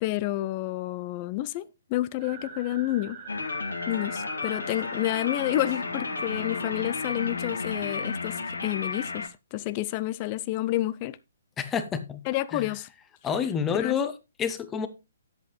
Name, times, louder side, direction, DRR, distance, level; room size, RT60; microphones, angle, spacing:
voice 1, 0.0-3.2 3.9-11.2 12.3-12.9 13.7-14.0, left 15 dB, 35° left, 0.5 m, -29 dB
sound 1, 2.2-9.1, right 5 dB, 35° right, 1.8 m, -44 dB
sound 2, 3.3-9.3, left 4 dB, 75° left, 1.7 m, -33 dB
voice 2, 11.6-12.2 12.5-12.7 13.2-14.9, left 7 dB, 15° left, 1.0 m, -28 dB
10.0 x 8.2 x 3.3 m
figure-of-eight pair, 130°, 0 cm